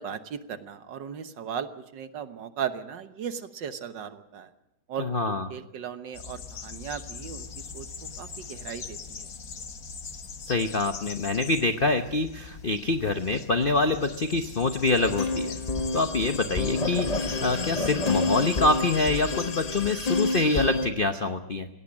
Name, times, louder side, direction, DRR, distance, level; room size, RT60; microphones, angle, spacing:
voice 1, 0.0-4.5 4.9-7.9 8.2-9.3, right 8 dB, 65° right, 10 dB, 1.6 m, -37 dB
voice 2, 5.0-5.5 10.5-15.6 15.9-21.7, left 3 dB, 65° left, 8 dB, 0.5 m, -25 dB
sound 1, 6.1-20.8, left 5 dB, 50° left, 1.6 m, -41 dB
sound 2, 14.9-20.9, left 2 dB, 30° left, 0.7 m, -29 dB
18.5 x 17.0 x 8.7 m, 0.86 s
omnidirectional pair, 2.3 m